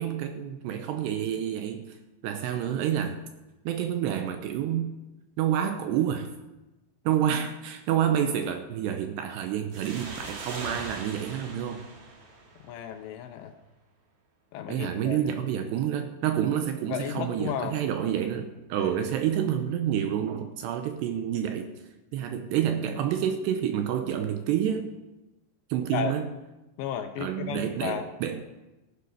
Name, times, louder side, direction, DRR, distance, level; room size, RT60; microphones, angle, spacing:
voice 1, 0.0-2.0 2.2-3.2 3.7-4.9 5.4-6.3 7.1-11.9 14.7-21.7 22.1-24.9 25.7-26.3 27.2-28.4, right 9 dB, 80° right, 7 dB, 2.6 m, -28 dB
sound 1, 9.7-13.1, right 3 dB, 50° right, 2.0 m, -41 dB
voice 2, 12.6-13.5 14.5-15.2 16.9-17.8 18.8-19.0 25.9-26.1 26.8-28.1, left 9 dB, 80° left, 7 dB, 2.7 m, -33 dB
15.5 x 9.7 x 5.7 m, 1.0 s
omnidirectional pair, 5.5 m